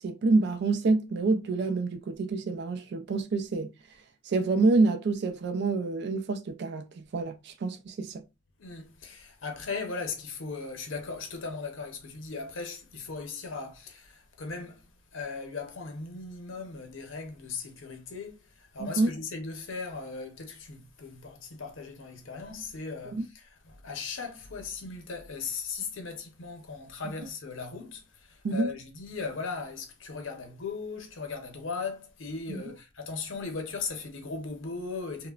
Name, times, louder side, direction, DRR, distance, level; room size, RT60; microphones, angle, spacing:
voice 1, 0.0-3.7 4.2-8.2 18.8-19.1 23.1-23.3 28.4-28.7 32.5-32.6, right 3 dB, 60° right, 0.4 m, -27 dB
voice 2, 8.6-35.3, left 4 dB, 90° left, 0.7 m, -38 dB
2.9 x 2.1 x 2.3 m
head